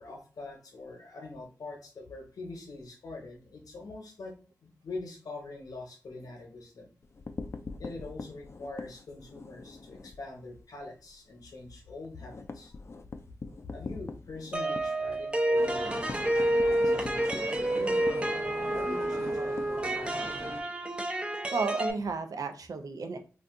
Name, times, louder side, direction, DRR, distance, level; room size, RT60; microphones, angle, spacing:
voice 1, 0.0-4.3 4.6-6.9 7.8-12.8 13.6-20.4, left 3 dB, 85° left, 2 dB, 0.8 m, -44 dB
sound 1, 7.0-10.2 10.6-10.8 11.1-11.2 11.5-20.4, left 3 dB, 45° left, 0.4 m, -43 dB
sound 2, 14.5-21.9, right 1 dB, 20° right, 0.5 m, -29 dB
sound 3, 15.5-20.6, right 1 dB, 55° right, 1.0 m, -40 dB
voice 2, 21.5-23.2, right 4 dB, 80° right, 6 dB, 0.5 m, -32 dB
2.5 x 2.3 x 3.5 m, 0.37 s
cardioid pair, 50°, 6 cm